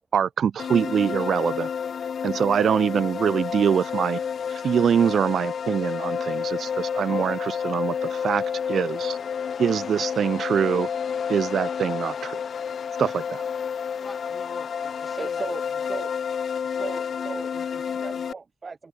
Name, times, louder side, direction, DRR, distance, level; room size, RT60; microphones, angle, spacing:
voice 1, 0.1-1.7 2.2-4.2 4.6-8.4 8.7-9.2 9.6-10.9 11.3-12.1 13.0-13.4, right 8 dB, 60° right, 1.4 m, -24 dB
sound 1, 0.6-18.3, left 7 dB, 50° left, 1.0 m, -30 dB
voice 2, 6.1-6.8 12.6-12.7 13.3-13.4 15.1-15.6 15.9-16.1 16.6-18.9, right 4 dB, 30° right, 3.3 m, -38 dB
voice 3, 13.9-16.0, left 2 dB, 10° left, 7.4 m, -46 dB
wide cardioid pair, 175°, 0 cm